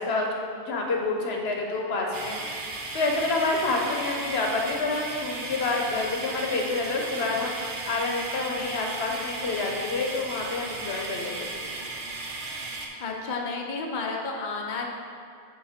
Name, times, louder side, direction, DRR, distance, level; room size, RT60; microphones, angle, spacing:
voice 1, 0.0-11.5, left 3 dB, 90° left, 0 dB, 1.1 m, -28 dB
sound 1, 2.1-12.9, right 2 dB, 60° right, 0.9 m, -35 dB
voice 2, 13.0-14.9, left 3 dB, 50° left, 0 dB, 0.9 m, -31 dB
8.7 x 3.8 x 4.3 m, 2.4 s
omnidirectional pair, 1.0 m